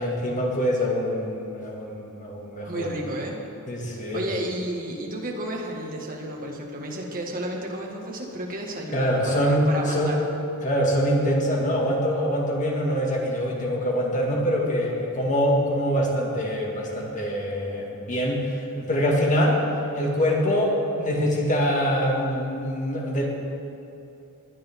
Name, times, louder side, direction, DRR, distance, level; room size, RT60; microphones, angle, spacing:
voice 1, 0.0-2.9 3.7-4.3 8.9-10.2 10.6-19.6 19.9-23.3, equal, 35° left, -1 dB, 2.0 m, -24 dB
voice 2, 2.7-3.4 4.1-10.2, right 1 dB, 40° right, -1 dB, 1.8 m, -32 dB
20.0 x 9.7 x 3.7 m, 2.7 s
head